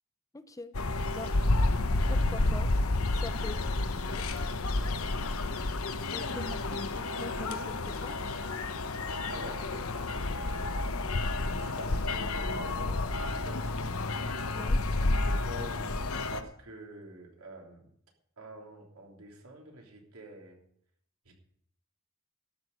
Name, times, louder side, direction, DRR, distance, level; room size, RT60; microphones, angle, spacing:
voice 1, 0.3-0.7 1.1-1.3 2.1-2.7 3.1-3.6 4.1-4.2 6.1-8.3 14.5-14.8, left 2 dB, 15° left, 10 dB, 0.7 m, -43 dB
sound 1, 0.7-16.4, left 2 dB, 80° left, 0.9 m, -30 dB
voice 2, 3.2-3.5 4.8-5.2 6.1-6.3 9.3-9.7 11.5-13.1 13.4-13.7 14.5-14.7 15.4-17.9 18.4-20.6 21.2-21.3, right 1 dB, 85° right, 1 dB, 3.2 m, -47 dB
12.5 x 6.3 x 9.4 m, 0.68 s
head